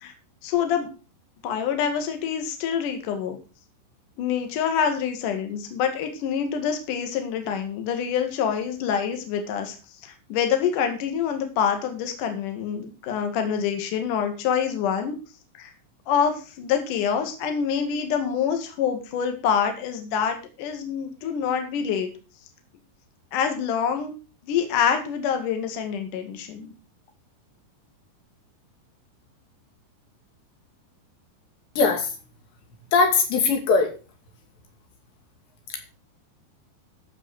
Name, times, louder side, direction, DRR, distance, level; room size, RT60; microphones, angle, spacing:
voice 1, 0.4-0.9 1.4-3.4 4.2-9.8 10.0-15.2 15.6-15.7 16.1-22.1 23.3-24.1 24.4-26.7, left 7 dB, 55° left, 6 dB, 3.0 m, -26 dB
voice 2, 31.8-32.1 32.9-33.9, left 4 dB, 80° left, 4 dB, 4.7 m, -20 dB
14.5 x 6.2 x 6.4 m, 0.34 s
omnidirectional pair, 5.0 m